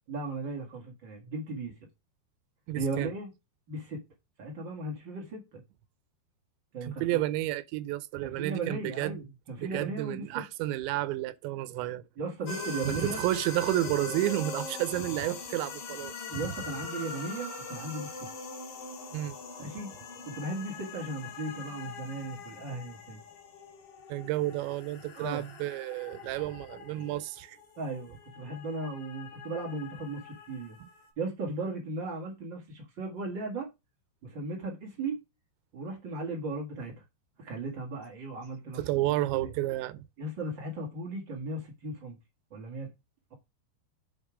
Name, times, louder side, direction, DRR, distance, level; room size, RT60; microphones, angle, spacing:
voice 1, 0.1-1.7 2.7-3.3 3.7-4.0 4.4-5.6 6.7-7.0 8.2-10.4 12.2-13.2 16.3-18.3 19.6-19.9 20.2-23.2 25.1-25.4 27.7-30.8 31.2-33.7 34.2-35.2 35.7-37.0 37.4-38.8 39.2-39.5 40.2-42.2 42.5-42.9, right 2 dB, 55° right, 1.3 m, -36 dB
voice 2, 2.7-3.1 6.8-9.2 9.6-12.0 12.8-16.1 19.1-19.4 24.1-27.6 30.8-30.9 38.8-40.1, right 15 dB, 85° right, 2.9 m, -31 dB
sound 1, 12.5-31.1, left 3 dB, 55° left, 3.8 m, -42 dB
7.8 x 5.4 x 4.9 m
omnidirectional pair, 5.2 m